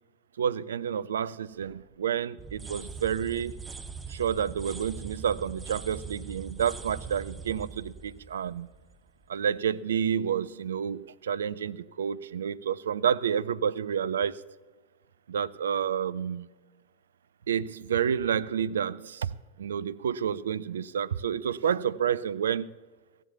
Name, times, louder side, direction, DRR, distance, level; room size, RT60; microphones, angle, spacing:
voice 1, 0.4-3.6 4.1-8.7 9.3-14.4 15.3-16.5 17.5-22.7, right 8 dB, 65° right, 0.4 m, -29 dB
sound 1, 2.4-9.2, right 5 dB, 10° right, 0.7 m, -42 dB
15.5 x 7.5 x 7.1 m
figure-of-eight pair, 90°, 0 cm